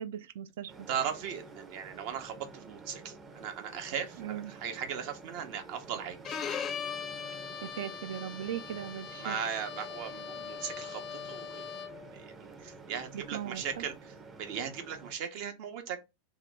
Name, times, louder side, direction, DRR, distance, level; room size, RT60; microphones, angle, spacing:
voice 1, 0.0-0.9 4.2-4.5 7.6-9.4 12.9-13.8, right 10 dB, 75° right, 0.3 m, -39 dB
sound 1, 0.7-15.1, right 3 dB, 20° right, 0.5 m, -50 dB
voice 2, 0.9-6.4 9.2-16.0, right 7 dB, 60° right, 0.8 m, -38 dB
Bowed string instrument, 6.3-12.1, left 7 dB, 30° left, 0.4 m, -40 dB
2.8 x 2.0 x 3.4 m
hypercardioid pair, 120°, 0 cm